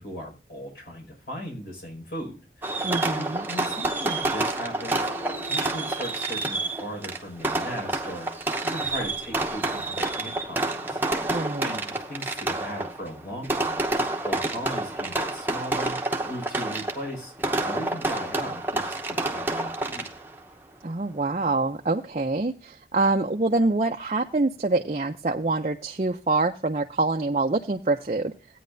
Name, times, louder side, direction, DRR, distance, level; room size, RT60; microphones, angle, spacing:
voice 1, 0.0-5.1 5.5-11.0 11.6-13.8 14.2-16.0 16.3-17.3 17.6-20.0, equal, 65° left, 0 dB, 5.5 m, -38 dB
Fireworks, 2.6-20.4, right 2 dB, 10° right, 0.9 m, -29 dB
voice 2, 2.8-3.5 11.3-11.7 20.8-28.3, right 3 dB, 40° right, 3 dB, 0.5 m, -25 dB
Thump thud, 3.6-7.7 8.1-12.8, left 1 dB, 5° left, 1.8 m, -49 dB
16.0 x 9.3 x 2.6 m, 0.32 s
head